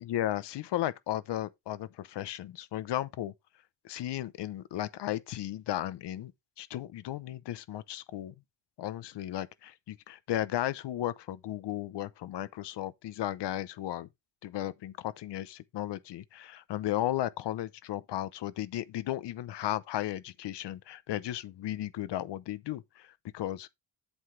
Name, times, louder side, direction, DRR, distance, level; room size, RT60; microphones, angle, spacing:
voice 1, 0.0-3.3 3.8-6.3 6.6-8.3 8.8-14.1 14.4-23.7, left 13 dB, 80° left, 0.8 m, -35 dB
8.1 x 7.8 x 3.2 m
wide cardioid pair, 175°, 41 cm